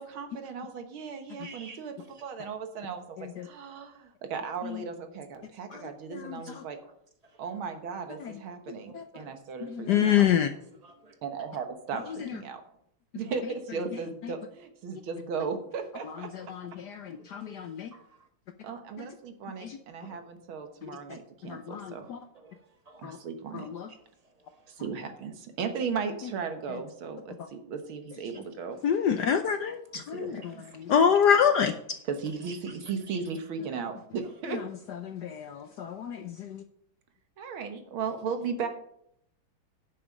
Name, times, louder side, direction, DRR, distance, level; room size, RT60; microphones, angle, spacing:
voice 1, 0.0-6.8 7.4-10.3 11.2-12.6 13.2-16.3 18.6-22.1 23.0-23.7 24.7-28.8 30.1-30.7 32.0-34.6 37.4-38.7, right 5 dB, 75° right, 2.0 m, -36 dB
voice 2, 1.4-1.8 9.1-9.3 10.1-10.2 10.8-11.2 17.2-18.2 20.0-20.2 22.3-23.2 24.4-24.6 32.5-32.8 33.1-33.2, right 3 dB, 25° right, 1.1 m, -50 dB
voice 3, 9.7-10.5 16.3-16.4 16.8-17.9 19.6-19.7 21.5-22.2 23.0-23.2 23.8-23.9 28.8-30.4 30.7-31.7 35.1-36.6, left 8 dB, 70° left, 1.0 m, -26 dB
9.9 x 7.1 x 5.2 m
omnidirectional pair, 2.3 m